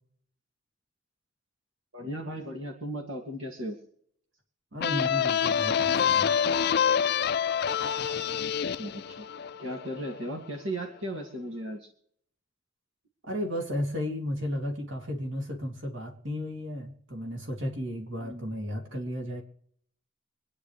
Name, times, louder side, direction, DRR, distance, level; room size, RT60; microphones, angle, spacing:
voice 1, 1.9-3.8 8.8-9.3 9.6-11.9 18.2-18.4, right 1 dB, 90° right, 1 dB, 2.3 m, -36 dB
voice 2, 4.7-6.3 13.2-19.4, equal, 75° right, 2 dB, 2.7 m, -34 dB
sound 1, 4.8-10.3, left 8 dB, 55° left, 0.4 m, -27 dB
26.0 x 9.8 x 3.3 m, 0.65 s
head